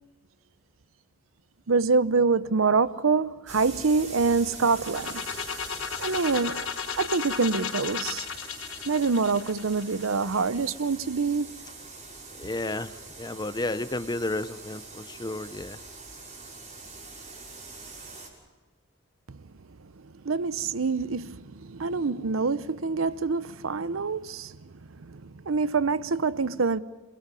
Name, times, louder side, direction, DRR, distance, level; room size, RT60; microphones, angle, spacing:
voice 1, 1.7-5.2 6.0-6.7 7.0-8.3 8.9-11.5 19.3-19.4 19.8-26.8, right 4 dB, 90° right, 0.8 m, -26 dB
sound 1, 3.5-18.3, right 3 dB, 40° right, 6.5 m, -43 dB
sound 2, 4.7-10.6, left 7 dB, 85° left, 1.4 m, -35 dB
voice 2, 12.4-12.9 13.2-15.8, left 2 dB, 20° left, 0.8 m, -32 dB
30.0 x 22.5 x 5.5 m
head